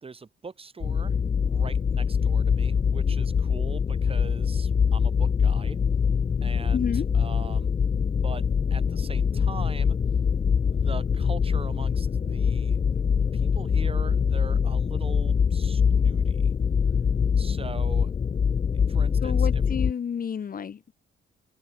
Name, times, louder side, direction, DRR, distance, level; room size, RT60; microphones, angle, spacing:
voice 1, 0.0-5.8 6.4-7.7 8.2-10.0 10.7-12.8 13.3-16.5 17.4-18.1 18.9-19.6, right 4 dB, 30° right, 1.9 m, -42 dB
sound 1, 0.8-19.9, left 6 dB, 30° left, 0.4 m, -24 dB
voice 2, 6.7-7.1 19.2-20.9, left 7 dB, 45° left, 1.9 m, -30 dB
cardioid pair, 90°, 20 cm